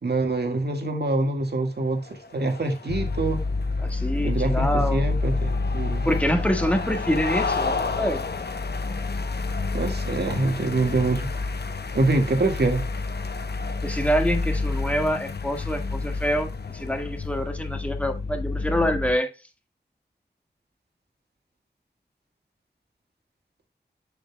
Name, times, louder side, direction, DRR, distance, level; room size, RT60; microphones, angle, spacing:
voice 1, 0.0-3.4 4.2-6.1 9.7-11.3 11.9-12.9, right 2 dB, 70° right, 1.8 m, -25 dB
sound 1, 1.8-17.5, left 4 dB, 70° left, 0.9 m, -35 dB
sound 2, 2.9-19.2, left 3 dB, 45° left, 0.5 m, -29 dB
voice 2, 3.8-5.1 6.0-8.2 13.8-19.3, equal, 5° left, 1.7 m, -26 dB
8.0 x 7.2 x 2.2 m
wide cardioid pair, 80°, 18 cm